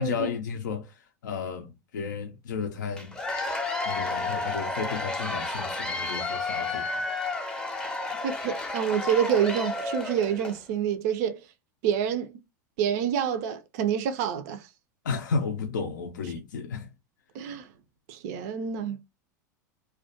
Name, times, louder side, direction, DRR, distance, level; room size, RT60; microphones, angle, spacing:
voice 1, 0.0-3.2 3.8-7.0 15.0-16.9, left 5 dB, 80° left, 0.4 m, -33 dB
Cheering / Applause / Crowd, 3.0-10.6, left 3 dB, 5° left, 0.5 m, -31 dB
voice 2, 8.2-11.4 11.8-12.4 12.8-14.7 17.3-17.7 18.1-19.0, right 8 dB, 60° right, 0.4 m, -27 dB
2.2 x 2.2 x 2.6 m
hypercardioid pair, 95°, 10 cm